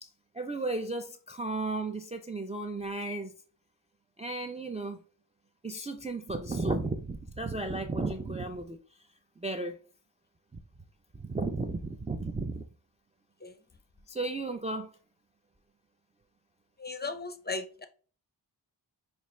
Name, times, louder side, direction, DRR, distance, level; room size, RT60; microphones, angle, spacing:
voice 1, 0.3-3.3 4.2-5.0 5.6-8.8 9.4-9.8 11.1-12.6 14.1-14.9, right 2 dB, 15° right, 0.4 m, -34 dB
voice 2, 16.8-17.9, left 3 dB, 20° left, 0.6 m, -36 dB
5.3 x 2.5 x 3.1 m
wide cardioid pair, 55°, 45 cm